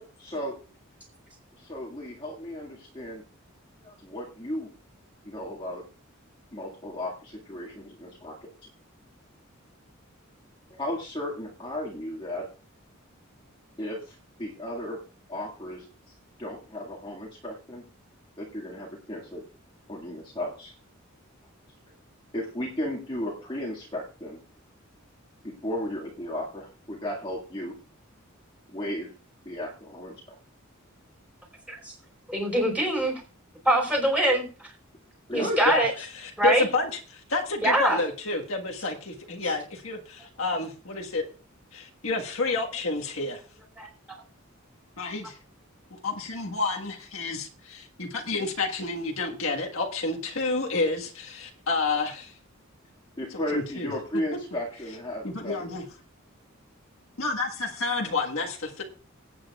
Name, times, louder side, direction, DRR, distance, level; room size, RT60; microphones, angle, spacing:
voice 1, 0.2-0.6 1.6-3.2 3.8-4.7 5.2-5.8 6.5-8.5 10.7-12.4 13.8-15.0 15.3-15.9 16.4-17.8 18.4-19.4 19.9-20.7 22.3-24.4 25.4-27.7 28.7-29.1 29.5-30.4 35.3-35.6 53.2-55.6 58.0-58.1, left 1 dB, 25° left, -5 dB, 2.1 m, -34 dB
voice 2, 32.3-33.2 33.6-34.4 35.3-35.9 36.4-36.6 37.6-38.0 39.4-39.5 43.8-43.9, right 1 dB, 5° right, -1 dB, 5.0 m, -23 dB
voice 3, 35.6-41.2 41.7-43.4 45.0-45.4 45.9-52.3 53.5-53.9 55.2-55.8 57.2-58.8, left 3 dB, 75° left, 1 dB, 1.6 m, -30 dB
24.0 x 9.2 x 2.4 m, 0.36 s
head